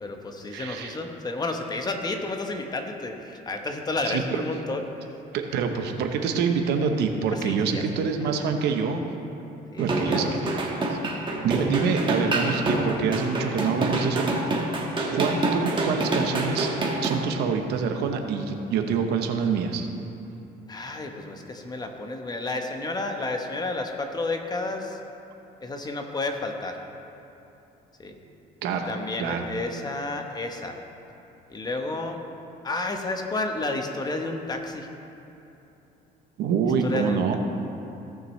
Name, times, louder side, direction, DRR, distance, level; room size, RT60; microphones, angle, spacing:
voice 1, 0.0-4.8 7.3-7.8 9.7-10.5 20.7-25.0 25.6-26.8 28.0-28.1 28.9-30.8 31.5-32.2 32.6-34.9 36.8-37.4, left 2 dB, 25° left, 4 dB, 0.9 m, -31 dB
voice 2, 0.5-1.0 4.1-4.4 5.3-9.1 9.8-10.7 11.4-14.2 15.1-16.7 17.0-19.9 28.6-28.9 29.2-29.5 36.4-37.4, right 6 dB, 80° right, 5 dB, 0.9 m, -26 dB
sound 1, 9.8-17.2, right 2 dB, 30° right, 1.4 m, -26 dB
17.0 x 6.2 x 3.2 m, 2.9 s
cardioid pair, 110°, 17 cm